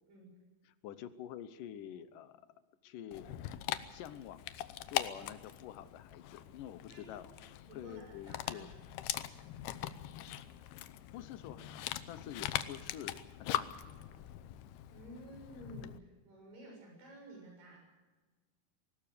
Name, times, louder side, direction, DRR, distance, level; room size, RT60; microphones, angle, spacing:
voice 1, 0.7-2.5 2.8-3.6 3.9-4.5 4.9-7.3 7.6-8.7 11.1-13.7, left 10 dB, 70° left, 13 dB, 2.3 m, -48 dB
Dog, 3.1-16.0, left 13 dB, 90° left, 2.8 m, -41 dB
voice 2, 7.7-8.7 14.9-17.8, right 1 dB, 60° right, 0 dB, 8.5 m, -53 dB
21.0 x 18.5 x 6.7 m, 1.2 s
omnidirectional pair, 4.4 m